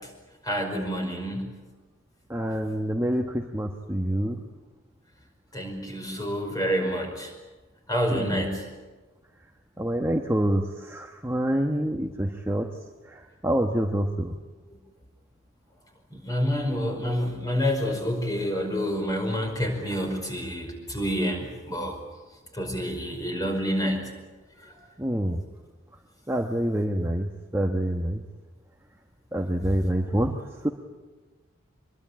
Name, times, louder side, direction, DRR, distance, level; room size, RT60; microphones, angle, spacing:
voice 1, 0.4-1.5 5.5-7.3 7.9-8.7 16.1-22.0 22.5-24.1, equal, 15° left, 3 dB, 5.2 m, -28 dB
voice 2, 2.3-4.4 8.1-8.4 9.8-12.7 13.1-14.3 25.0-25.4 26.3-28.2 29.3-30.3 30.6-30.7, right 1 dB, 10° right, 2 dB, 1.1 m, -26 dB
24.5 x 22.0 x 8.7 m, 1.3 s
head